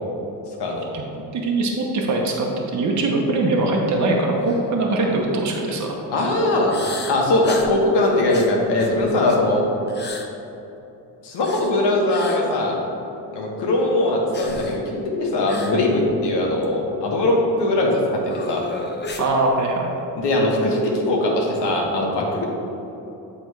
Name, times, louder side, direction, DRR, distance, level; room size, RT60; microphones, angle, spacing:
voice 1, 0.9-5.9 19.2-19.9, right 2 dB, 45° right, -1 dB, 1.0 m, -22 dB
sound 1, 4.5-4.7 5.1-5.2 6.7-7.8 8.3-9.5 9.9-10.3 11.3-11.7 12.1-12.4 14.3-14.8 15.5-15.8 16.0-16.2 16.6-16.7 18.3-19.3, left 4 dB, 25° left, 0.8 m, -34 dB
voice 2, 6.1-6.8 7.1-9.7 11.2-12.8 13.3-18.6 20.2-22.5, left 2 dB, 80° left, -1 dB, 1.4 m, -20 dB
8.0 x 3.5 x 4.7 m, 3.0 s
cardioid pair, 85°, 41 cm